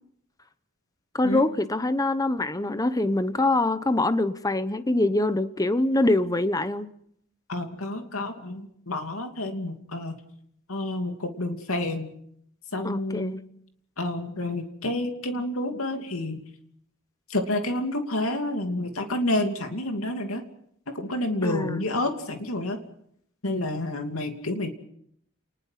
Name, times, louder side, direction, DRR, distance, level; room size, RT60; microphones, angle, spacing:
voice 1, 1.1-6.9 12.8-13.4 21.4-21.8, left 2 dB, 15° left, 12 dB, 0.9 m, -24 dB
voice 2, 7.5-10.1 10.7-12.1 12.7-13.4 14.0-16.4 17.3-20.4 20.9-22.8 23.4-24.7, left 1 dB, 75° left, 5 dB, 2.8 m, -29 dB
29.5 x 20.5 x 5.9 m, 0.72 s
head